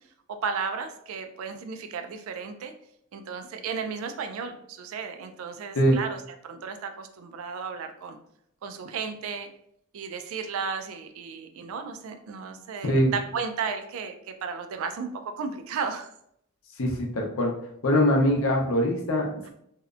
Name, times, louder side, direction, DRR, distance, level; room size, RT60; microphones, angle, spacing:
voice 1, 0.3-2.7 3.1-8.2 8.6-9.5 9.9-16.1 19.4-19.5, right 5 dB, 75° right, 7 dB, 0.3 m, -34 dB
voice 2, 16.8-17.5 17.8-19.5, equal, 80° left, 0 dB, 0.6 m, -23 dB
2.8 x 2.0 x 2.4 m, 0.73 s
head